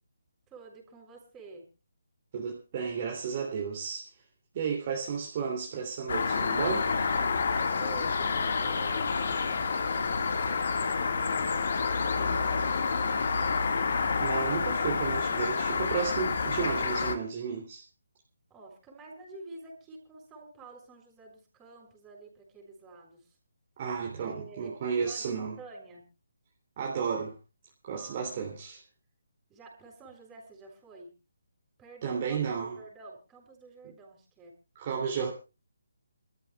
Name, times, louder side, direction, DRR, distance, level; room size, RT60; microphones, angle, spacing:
voice 1, 0.5-1.7 7.8-13.3 18.5-23.4 24.2-26.1 27.9-28.5 29.5-31.1 31.8-34.5, right 3 dB, 15° right, 6.6 m, -50 dB
voice 2, 2.3-4.1 4.5-6.9 14.2-17.8 23.8-25.5 26.8-27.4 27.8-28.8 32.0-32.8 34.7-35.3, right 6 dB, 35° right, 3.0 m, -33 dB
sound 1, 6.1-17.2, left 5 dB, 55° left, 1.9 m, -28 dB
28.5 x 14.0 x 2.4 m
figure-of-eight pair, 155°, 0 cm